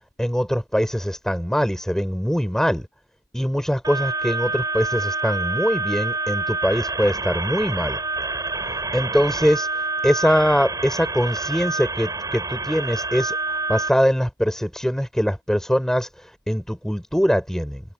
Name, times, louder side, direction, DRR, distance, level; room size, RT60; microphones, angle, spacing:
voice 1, 0.2-2.9 3.3-8.0 8.7-17.8, equal, 5° left, 5.5 m, -22 dB
sound 1, 3.8-13.9, right 3 dB, 15° right, 7.4 m, -27 dB
head